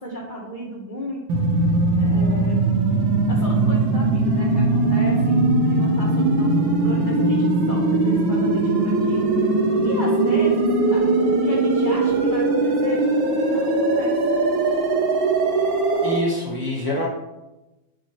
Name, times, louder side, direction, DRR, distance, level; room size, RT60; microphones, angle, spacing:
voice 1, 0.0-1.4 2.0-2.6 3.3-9.5 9.8-13.0 13.5-14.2, equal, 35° left, -4 dB, 0.9 m, -35 dB
sound 1, 1.3-16.2, right 2 dB, 80° right, 1.6 m, -20 dB
voice 2, 16.0-17.1, left 1 dB, 10° left, -4 dB, 1.5 m, -25 dB
7.9 x 5.7 x 3.0 m, 1.0 s
omnidirectional pair, 2.1 m